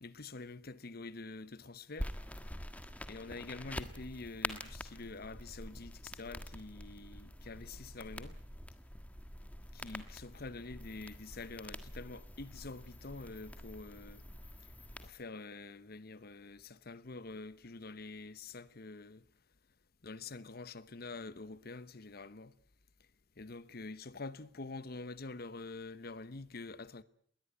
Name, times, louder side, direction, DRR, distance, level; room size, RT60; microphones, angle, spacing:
voice 1, 0.0-2.1 3.1-8.3 9.7-14.2 15.0-19.2 20.0-22.5 23.4-27.0, left 3 dB, 55° left, 1.0 m, -46 dB
sound 1, 2.0-15.1, left 1 dB, 10° left, 1.5 m, -46 dB
21.5 x 18.5 x 9.5 m
head